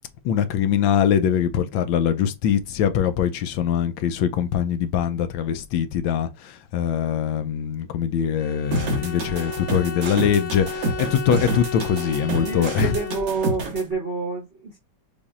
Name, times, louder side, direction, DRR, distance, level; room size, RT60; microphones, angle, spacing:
voice 1, 0.2-12.9, left 8 dB, 80° left, 1.3 m, -23 dB
Bowed string instrument, 8.4-13.6, left 4 dB, 55° left, 0.7 m, -34 dB
sound 1, 8.7-13.8, right 2 dB, 75° right, 2.2 m, -28 dB
voice 2, 12.3-14.8, right 4 dB, 40° right, 0.9 m, -28 dB
6.9 x 2.6 x 2.4 m
omnidirectional pair, 2.2 m